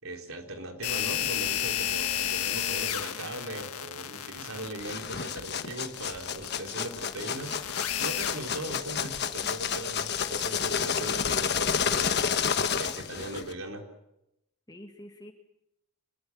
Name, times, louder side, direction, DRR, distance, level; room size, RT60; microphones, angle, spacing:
voice 1, 0.0-7.6 8.0-12.2 12.7-13.9, right 1 dB, 70° right, 3 dB, 4.0 m, -39 dB
sound 1, 0.8-12.1, left 11 dB, 85° left, 1.6 m, -33 dB
sound 2, 4.8-13.5, left 7 dB, 50° left, 1.3 m, -30 dB
voice 2, 9.1-9.5 14.7-15.3, equal, 20° left, 4 dB, 2.1 m, -48 dB
27.0 x 21.0 x 7.3 m, 0.84 s
head